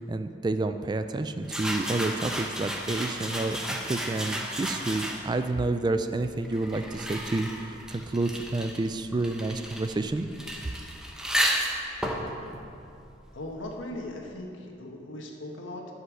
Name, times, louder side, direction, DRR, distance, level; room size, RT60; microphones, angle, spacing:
voice 1, 0.0-10.3, right 2 dB, 20° right, 9 dB, 0.3 m, -29 dB
sound 1, 1.4-5.5 6.2-13.6, equal, 5° right, 0.9 m, -33 dB
voice 2, 13.3-15.9, left 1 dB, 85° left, 1 dB, 1.3 m, -38 dB
11.5 x 5.4 x 6.2 m, 2.7 s
head